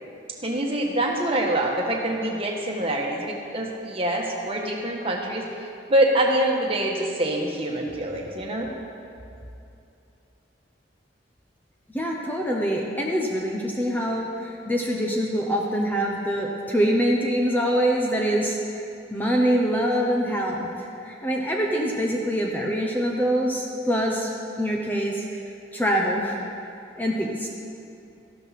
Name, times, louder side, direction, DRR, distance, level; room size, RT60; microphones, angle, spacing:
voice 1, 0.4-5.5 5.9-8.7, right 1 dB, 30° right, -1 dB, 1.4 m, -25 dB
voice 2, 11.9-18.8 19.1-24.3 24.6-25.4 25.7-26.4 27.0-27.5, equal, 10° left, -1 dB, 0.8 m, -24 dB
13.5 x 12.0 x 4.3 m, 2.7 s
head